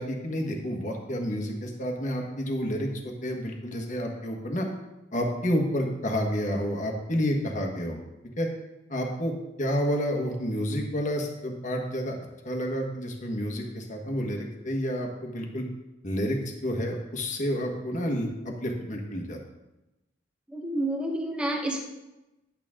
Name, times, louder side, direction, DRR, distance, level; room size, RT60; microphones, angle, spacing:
voice 1, 0.0-4.7 5.1-8.0 8.4-8.5 8.9-9.3 9.6-12.2 12.4-15.6 16.0-19.4, equal, 40° left, 1 dB, 1.5 m, -29 dB
voice 2, 20.5-21.8, right 1 dB, 5° right, 0 dB, 1.2 m, -29 dB
10.5 x 8.8 x 3.8 m, 1.0 s
head